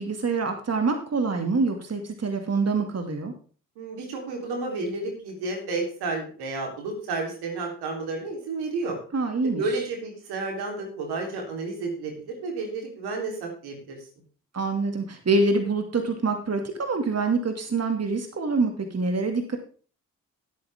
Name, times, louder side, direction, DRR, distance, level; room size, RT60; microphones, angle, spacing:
voice 1, 0.0-3.3 9.1-9.6 14.5-19.6, right 3 dB, 40° right, 5 dB, 2.3 m, -25 dB
voice 2, 3.8-9.0 9.6-12.1 12.4-14.0, right 3 dB, 80° right, 1 dB, 3.7 m, -31 dB
17.5 x 8.6 x 3.6 m, 0.41 s
hypercardioid pair, 40°, 38 cm